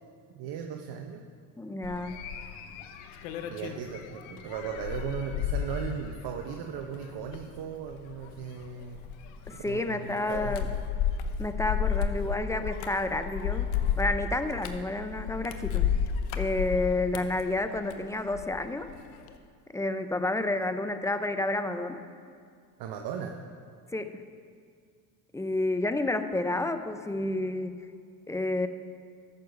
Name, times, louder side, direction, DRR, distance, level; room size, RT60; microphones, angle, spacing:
voice 1, 0.3-1.3 3.5-9.0 9.5-10.8 22.8-23.4, right 7 dB, 60° right, 3 dB, 0.9 m, -37 dB
voice 2, 1.6-2.2 9.5-10.7 11.4-15.9 16.4-18.9 19.7-22.0 23.9-24.2 25.3-27.8 28.3-28.7, left 2 dB, 5° left, 9 dB, 0.5 m, -30 dB
sound 1, 1.8-18.5 18.9-19.3, left 7 dB, 80° left, 0.9 m, -33 dB
14.0 x 6.8 x 5.3 m, 2.2 s
supercardioid pair, 90°, 44 cm